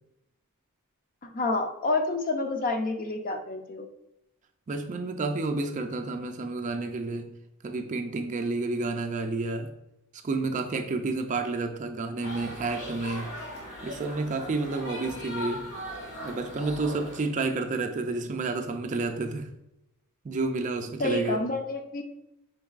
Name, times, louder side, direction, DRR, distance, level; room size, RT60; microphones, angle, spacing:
voice 1, 1.2-3.9 21.0-22.0, left 2 dB, 40° left, 5 dB, 0.5 m, -29 dB
voice 2, 4.7-7.3 7.6-9.7 10.2-13.3 13.8-15.7 16.2-19.5 20.2-21.5, right 3 dB, 35° right, 5 dB, 0.3 m, -30 dB
sound 1, 12.2-17.2, left 1 dB, 55° left, 1.5 m, -39 dB
5.2 x 3.8 x 2.4 m, 0.85 s
head